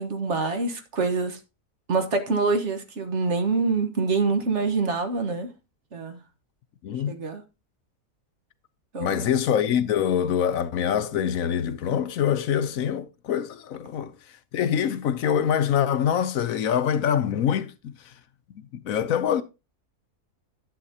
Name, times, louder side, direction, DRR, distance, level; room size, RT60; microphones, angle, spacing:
voice 1, 0.0-1.4 1.9-5.5 5.9-6.2 7.1-7.4 8.9-9.2, right 4 dB, 50° right, 1.5 m, -25 dB
voice 2, 6.8-7.2 9.0-14.1 14.5-18.1 18.7-19.4, left 9 dB, 70° left, 1.0 m, -24 dB
11.0 x 8.1 x 2.8 m
omnidirectional pair, 1.6 m